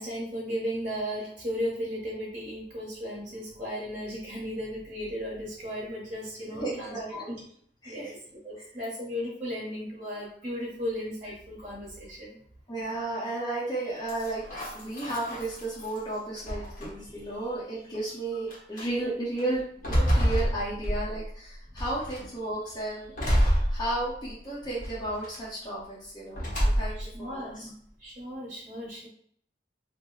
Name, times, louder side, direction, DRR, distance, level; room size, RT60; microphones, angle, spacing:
voice 1, 0.0-7.4 7.8-8.1 8.4-12.3 27.0-27.7 28.0-29.1, equal, 35° right, -6 dB, 1.0 m, -35 dB
voice 2, 6.5-7.4 7.8-8.1 12.7-14.4 14.7-19.6 19.9-27.7, right 2 dB, 25° left, -9 dB, 0.7 m, -33 dB
sound 1, 14.1-16.0 16.4-17.2 17.9-18.0 18.5-18.8 19.4-21.3 21.8-22.3 23.2-24.3 24.8-25.4 26.3-27.2, equal, 50° left, 0.9 m, -28 dB
3.0 x 2.0 x 3.8 m, 0.62 s
head